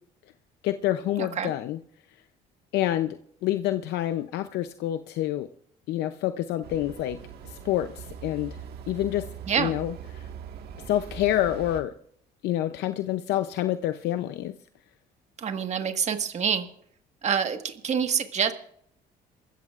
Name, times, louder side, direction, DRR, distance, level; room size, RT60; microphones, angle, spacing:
voice 1, 0.6-1.8 2.7-5.5 5.9-7.2 7.5-8.6 8.9-9.3 9.6-9.9 10.9-11.9 12.4-14.6, left 13 dB, 80° left, 10 dB, 0.6 m, -27 dB
voice 2, 1.2-1.5 9.5-9.7 15.4-16.7 17.2-18.5, right 7 dB, 40° right, 6 dB, 1.6 m, -26 dB
sound 1, 6.6-11.8, right 7 dB, 70° right, 1.7 m, -41 dB
27.5 x 15.0 x 2.5 m, 0.66 s
cardioid pair, 110°, 17 cm